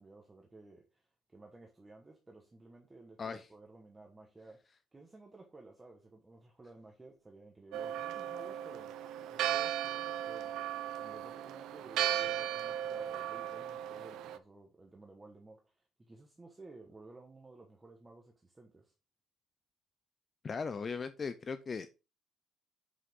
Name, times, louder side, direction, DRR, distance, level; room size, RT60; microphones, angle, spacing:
voice 1, 0.0-4.6 4.9-10.6 11.0-18.9, right 2 dB, 15° right, 2 dB, 1.2 m, -55 dB
Church bell, 7.7-14.4, right 11 dB, 70° right, 0.7 m, -36 dB
voice 2, 20.4-22.0, left 5 dB, 25° left, 12 dB, 0.5 m, -38 dB
7.7 x 6.3 x 3.7 m, 0.29 s
cardioid pair, 155°, 0 cm